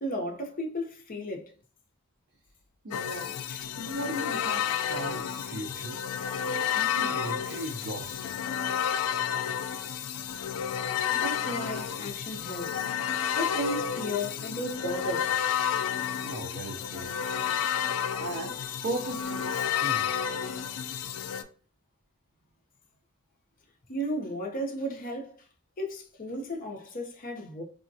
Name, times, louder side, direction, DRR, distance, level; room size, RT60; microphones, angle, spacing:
voice 1, 0.0-1.5 3.5-3.6 11.1-12.9 13.4-15.4 15.7-16.0 23.9-25.4 25.8-27.6, equal, 40° left, 0.6 m, -34 dB
voice 2, 2.8-3.4 3.8-6.0 6.7-8.4 16.0-17.2 18.2-20.2, right 1 dB, 50° right, 0.5 m, -37 dB
sound 1, 2.9-21.4, left 8 dB, 80° left, 0.3 m, -31 dB
3.4 x 2.1 x 2.6 m
head